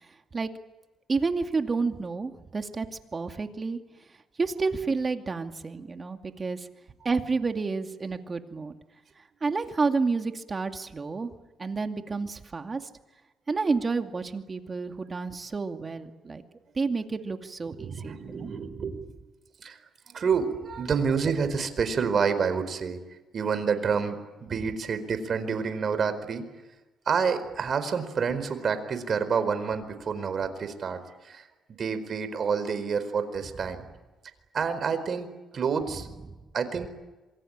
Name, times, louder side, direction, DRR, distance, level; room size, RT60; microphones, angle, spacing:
voice 1, 1.1-3.8 4.4-6.7 7.0-8.8 9.4-11.3 11.6-12.8 13.5-16.4 16.7-18.8 36.3-36.4, right 4 dB, 30° right, 6 dB, 2.4 m, -30 dB
voice 2, 17.8-19.0 19.6-19.8 20.1-23.0 23.3-26.5 27.1-31.4 31.8-33.8 34.5-36.1 36.5-36.9, right 6 dB, 50° right, 10 dB, 4.5 m, -28 dB
26.5 x 24.0 x 8.9 m, 1.1 s
cardioid pair, 90°, 0 cm